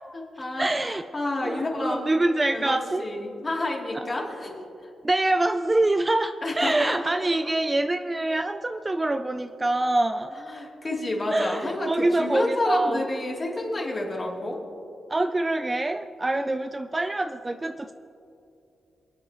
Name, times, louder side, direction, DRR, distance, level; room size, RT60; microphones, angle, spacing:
voice 1, 0.0-2.1 2.5-4.9 6.4-7.1 10.4-14.6, left 2 dB, 35° left, -3 dB, 3.0 m, -30 dB
voice 2, 0.6-1.0 1.4-3.1 3.9-4.1 5.0-10.3 11.3-13.1 15.1-17.9, right 2 dB, 20° right, 9 dB, 0.4 m, -25 dB
27.5 x 9.2 x 3.0 m, 2.7 s
cardioid pair, 95°, 0 cm